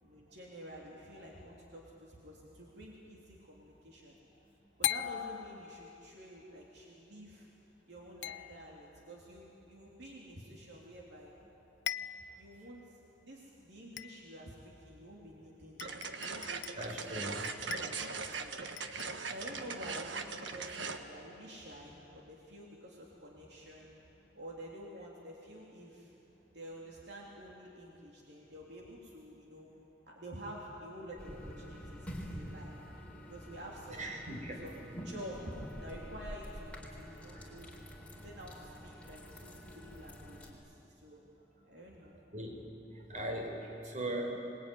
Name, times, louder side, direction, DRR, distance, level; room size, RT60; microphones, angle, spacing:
voice 1, 0.0-4.2 4.8-7.5 7.9-11.3 12.4-18.6 19.2-23.9 24.3-26.1 26.5-29.7 30.1-34.1 34.5-35.5 35.8-37.7 38.1-41.3 41.6-42.2, equal, 65° right, -3 dB, 3.3 m, -50 dB
sound 1, 1.2-1.7 4.8-6.1 8.2-9.0 11.1-11.2 11.5-11.6 11.9-12.5 13.0-13.1 14.0-14.5 15.3-15.4 15.8-16.9 17.4-18.4 18.8-19.2, left 12 dB, 70° left, 0.5 m, -41 dB
sound 2, 15.8-21.0, right 4 dB, 85° right, 1.4 m, -40 dB
voice 2, 16.8-17.4 34.0-34.6 37.3-37.5 42.3-42.7 42.9-44.4, right 1 dB, 45° right, 1 dB, 4.7 m, -39 dB
sound 3, 31.2-40.5, equal, 5° left, 3.9 m, -47 dB
26.0 x 20.5 x 9.4 m, 2.9 s
head